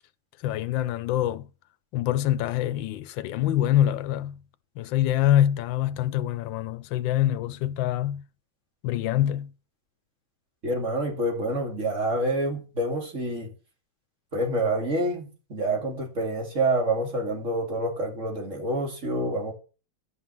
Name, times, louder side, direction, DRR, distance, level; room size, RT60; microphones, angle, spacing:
voice 1, 0.4-1.5 1.9-4.4 4.8-8.2 8.8-9.5, left 12 dB, 85° left, 1.4 m, -25 dB
voice 2, 10.6-13.5 14.3-19.5, right 1 dB, 40° right, 2.7 m, -27 dB
10.5 x 5.6 x 6.0 m
omnidirectional pair, 2.0 m